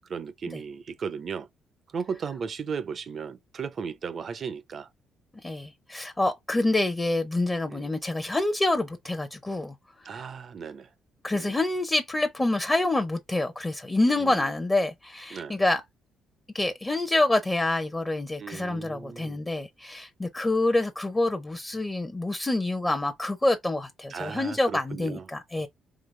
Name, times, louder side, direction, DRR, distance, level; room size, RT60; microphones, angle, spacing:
voice 1, 0.1-1.5 1.9-4.9 6.6-6.7 7.7-7.9 10.0-10.9 11.3-11.6 14.1-14.5 15.3-15.6 18.4-19.4 24.1-25.3, right 6 dB, 50° right, 0.5 m, -36 dB
voice 2, 5.4-9.7 10.0-10.2 11.2-15.8 16.5-25.7, left 2 dB, 20° left, 0.7 m, -27 dB
3.9 x 2.9 x 3.2 m
cardioid pair, 80°, 0 cm